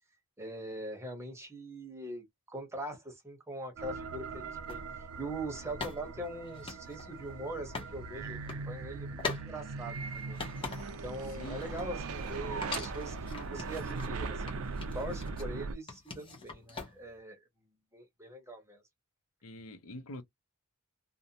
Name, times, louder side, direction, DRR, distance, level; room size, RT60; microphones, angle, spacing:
voice 1, 0.4-8.4 8.7-10.4 11.0-14.7 14.9-17.4 17.9-18.8, right 1 dB, 15° right, 0.8 m, -42 dB
sound 1, 3.8-15.8, right 4 dB, 70° right, 0.4 m, -40 dB
sound 2, 4.7-4.8 5.8-7.9 8.3-8.6 9.2-9.5 9.9-11.1 11.4-12.3 12.6-14.1 14.5-15.5 15.9-17.2, left 4 dB, 25° left, 0.8 m, -42 dB
voice 2, 11.2-11.7 19.4-20.2, left 1 dB, 75° left, 0.6 m, -45 dB
2.5 x 2.1 x 2.7 m
head